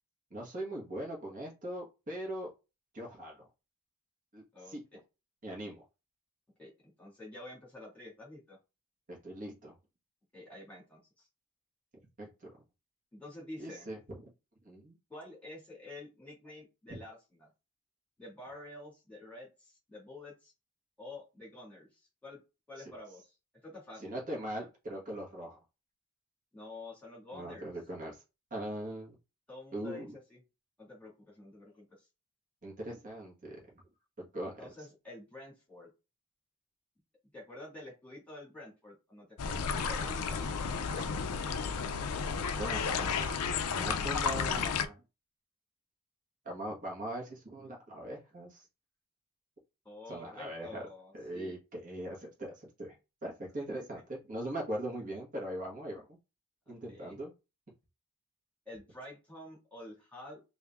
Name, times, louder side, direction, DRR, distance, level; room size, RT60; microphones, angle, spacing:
voice 1, 0.3-2.5 2.9-3.5 4.3-4.8 5.4-5.8 9.1-9.7 12.2-12.5 13.6-14.3 14.6-15.0 16.9-17.0 24.0-25.6 27.3-28.2 28.5-29.2 29.7-30.1 32.6-33.6 34.2-34.6 42.6-43.2 43.7-45.0 46.4-48.6 50.1-50.8 51.1-56.2 56.7-57.3, right 1 dB, 35° right, -2 dB, 1.5 m, -40 dB
voice 2, 4.5-5.0 6.6-6.7 7.0-8.6 10.3-11.3 13.1-13.9 15.1-17.5 18.2-20.5 21.0-22.4 22.7-23.3 23.6-24.1 26.5-27.7 29.5-30.4 30.8-32.1 34.6-35.9 37.3-41.1 49.8-51.6 56.7-57.2 58.7-60.4, left 2 dB, 5° left, -3 dB, 1.9 m, -49 dB
sound 1, 39.4-44.9, left 6 dB, 85° left, 0.5 m, -32 dB
3.5 x 2.7 x 3.5 m, 0.28 s
head